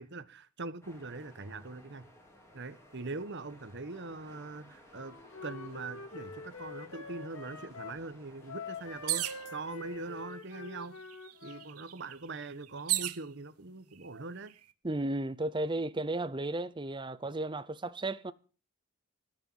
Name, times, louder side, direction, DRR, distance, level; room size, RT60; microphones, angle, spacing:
voice 1, 0.0-2.1 2.5-10.9 11.4-14.5, right 3 dB, 55° right, 1.1 m, -42 dB
sound 1, 0.8-10.2, equal, 10° left, 3.6 m, -58 dB
Wind instrument woodwind instrument, 4.9-8.0 8.4-11.7, left 4 dB, 70° left, 2.5 m, -46 dB
sound 2, 9.1-9.5 10.4-10.5 10.8-13.2 14.0-14.5, right 15 dB, 90° right, 1.1 m, -34 dB
voice 2, 14.8-18.3, right 2 dB, 20° right, 0.7 m, -34 dB
19.0 x 6.7 x 7.3 m
head